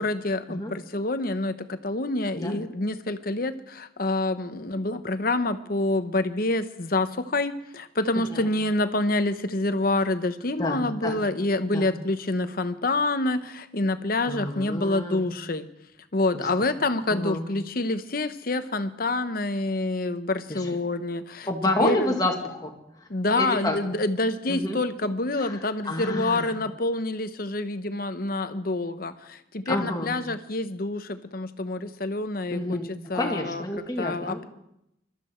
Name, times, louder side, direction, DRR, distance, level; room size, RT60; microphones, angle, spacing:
voice 1, 0.0-15.7 16.1-21.5 21.8-22.2 23.1-33.6 34.0-34.5, left 2 dB, 50° left, 10 dB, 0.9 m, -27 dB
voice 2, 8.2-8.5 10.6-11.2 11.7-11.9 14.3-15.3 16.3-16.5 17.1-17.4 20.5-20.7 21.5-22.7 23.3-23.8 24.5-24.8 25.4-25.6 25.9-26.5 29.7-30.1 32.5-34.4, left 1 dB, 20° left, 1 dB, 2.0 m, -29 dB
22.0 x 13.0 x 4.5 m, 0.82 s
head